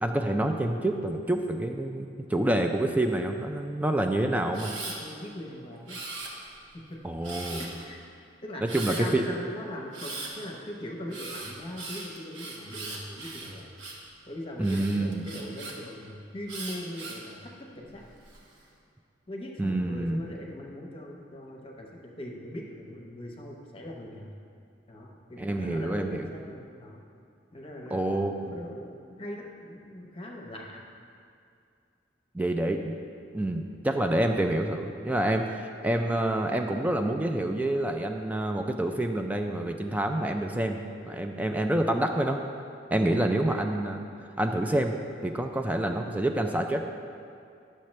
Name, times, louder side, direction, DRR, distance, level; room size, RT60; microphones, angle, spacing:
voice 1, 0.0-4.7 7.0-7.6 8.6-9.2 14.6-15.3 19.6-20.2 25.4-26.3 27.9-28.7 32.3-32.9 33.3-42.4 42.9-44.0 44.4-46.9, right 1 dB, 10° right, 4 dB, 0.3 m, -27 dB
Camera, 4.5-5.0 5.9-6.6 7.2-7.8 8.7-9.0 9.9-10.3 11.1-14.1 14.6-15.7 16.5-17.3 17.9-18.4, right 3 dB, 90° right, 1.1 m, -39 dB
voice 2, 4.9-6.0 6.7-7.0 7.5-8.0 8.4-13.7 14.3-18.0 19.3-24.4 24.9-27.0 27.5-28.0 28.4-30.8 43.0-43.6, left 1 dB, 30° left, 0 dB, 0.8 m, -40 dB
10.0 x 6.6 x 3.2 m, 2.4 s
head